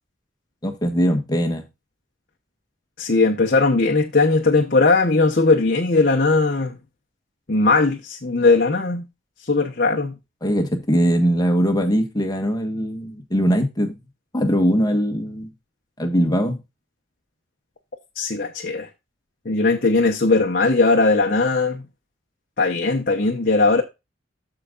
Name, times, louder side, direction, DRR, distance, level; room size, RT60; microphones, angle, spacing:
voice 1, 0.6-1.6 10.4-14.0 14.3-15.5 16.0-16.6, equal, 20° left, 1.5 m, -21 dB
voice 2, 3.0-6.8 7.5-9.0 9.4-10.1 18.2-18.9 19.4-21.8 22.6-23.8, left 3 dB, 50° left, 1.0 m, -18 dB
14.0 x 5.0 x 2.4 m
head